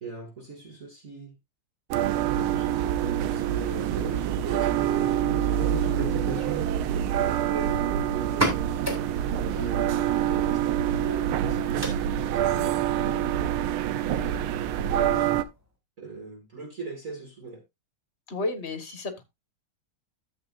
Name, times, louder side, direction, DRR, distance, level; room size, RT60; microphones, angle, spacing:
voice 1, 0.0-1.3 2.4-8.6 9.4-11.9 14.9-15.3 16.0-17.6, right 3 dB, 40° right, 2.3 m, -38 dB
sound 1, 1.9-15.4, right 11 dB, 85° right, 1.6 m, -26 dB
sound 2, 15.4-15.7, right 1 dB, 5° right, 3.0 m, -37 dB
voice 2, 18.3-19.2, left 2 dB, 35° left, 1.8 m, -32 dB
13.0 x 7.5 x 2.6 m
omnidirectional pair, 2.3 m